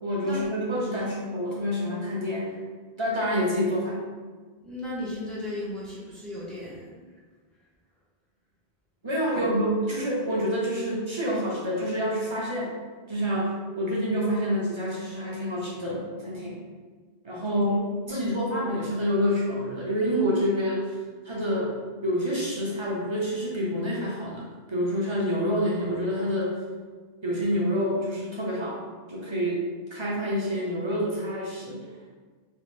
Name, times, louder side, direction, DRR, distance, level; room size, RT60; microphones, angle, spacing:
voice 1, 0.0-2.6 3.0-4.0 9.0-12.8 13.1-16.6 17.2-20.9 21.2-21.7 22.0-26.6 27.2-28.8 29.1-29.6 29.9-31.8, equal, 35° right, -6 dB, 0.6 m, -27 dB
voice 2, 4.6-6.9 17.7-17.8 18.1-18.4, left 1 dB, ahead, -8 dB, 0.7 m, -36 dB
3.0 x 2.5 x 3.1 m, 1.5 s
omnidirectional pair, 1.1 m